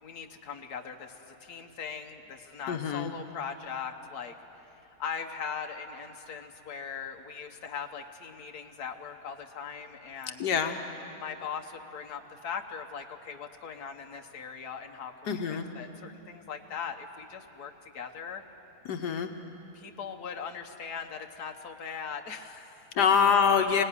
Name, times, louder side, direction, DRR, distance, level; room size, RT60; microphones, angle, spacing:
voice 1, 0.0-4.3 5.0-10.4 11.2-15.4 15.7-18.4 19.7-23.1, left 6 dB, 70° left, 4 dB, 1.7 m, -40 dB
voice 2, 2.7-3.1 10.4-10.8 15.3-15.6 18.8-19.3 22.9-23.8, left 7 dB, 90° left, 5 dB, 1.7 m, -25 dB
24.0 x 18.5 x 9.8 m, 3.0 s
omnidirectional pair, 1.7 m